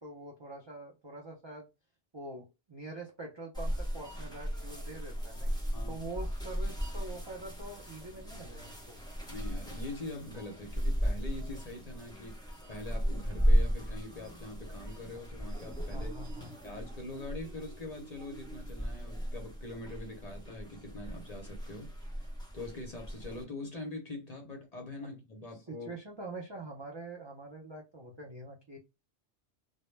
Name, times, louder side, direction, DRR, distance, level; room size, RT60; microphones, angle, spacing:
voice 1, 0.0-1.7 2.1-5.5 5.9-9.0 15.9-16.5 25.7-28.8, right 2 dB, 45° right, 0.3 m, -45 dB
sound 1, 3.5-23.4, equal, 5° left, 0.6 m, -35 dB
voice 2, 9.3-16.1 16.6-21.9 22.5-25.9, left 2 dB, 45° left, 0.6 m, -43 dB
2.1 x 2.0 x 3.1 m
omnidirectional pair, 1.1 m